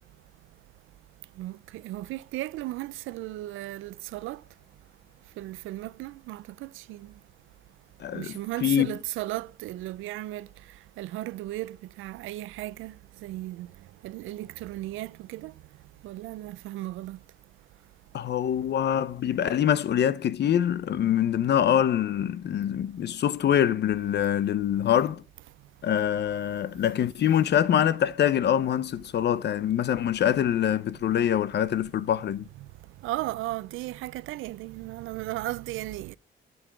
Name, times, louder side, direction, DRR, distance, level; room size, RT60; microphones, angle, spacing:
voice 1, 1.4-4.4 5.4-7.1 8.1-10.5 11.0-12.9 13.2-13.7 14.0-15.5 16.0-17.2 33.0-36.2, right 16 dB, 85° right, 0.5 m, -35 dB
voice 2, 8.0-8.3 8.6-8.9 18.1-25.2 25.8-32.5, left 10 dB, 60° left, 0.8 m, -24 dB
11.0 x 7.9 x 4.8 m
cardioid pair, 90°, 20 cm